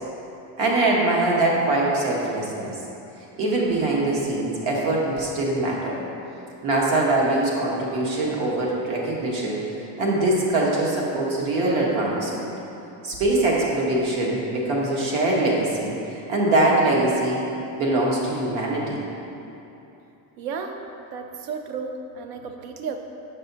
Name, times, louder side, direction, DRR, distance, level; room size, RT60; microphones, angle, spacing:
voice 1, 0.6-2.7 3.4-6.0 6.6-9.6 10.0-12.5 13.0-17.4 17.8-19.0, right 2 dB, 70° right, -3 dB, 1.3 m, -23 dB
voice 2, 20.4-20.8 21.1-23.0, right 5 dB, 55° right, 5 dB, 0.5 m, -33 dB
6.7 x 5.4 x 2.8 m, 2.9 s
cardioid pair, 165°, 42 cm